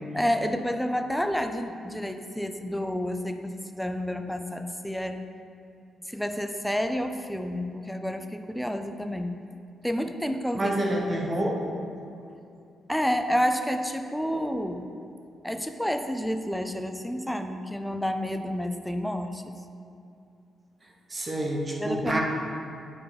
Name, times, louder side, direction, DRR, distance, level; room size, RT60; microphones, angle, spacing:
voice 1, 0.1-5.2 6.1-9.4 9.8-10.7 11.2-11.7 12.9-14.9 15.4-19.6 21.8-22.2, equal, ahead, 6 dB, 0.4 m, -30 dB
voice 2, 10.5-11.6 21.1-22.2, right 1 dB, 25° right, 0 dB, 1.0 m, -27 dB
8.6 x 4.7 x 5.0 m, 2.6 s
cardioid pair, 150°, 0 cm